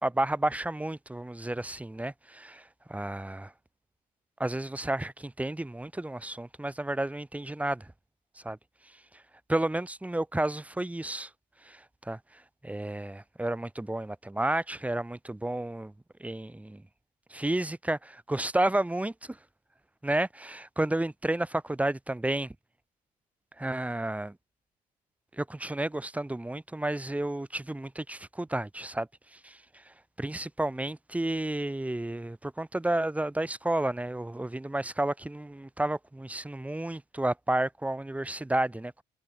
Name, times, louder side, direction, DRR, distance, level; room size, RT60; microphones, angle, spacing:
voice 1, 0.0-3.5 4.4-7.9 8.4-8.6 8.9-9.2 9.5-11.3 11.6-15.9 16.2-16.8 17.3-19.4 20.0-22.5 23.6-24.4 25.3-39.0, right 1 dB, 10° right, 2.8 m, -31 dB
cardioid pair, 110°, 17 cm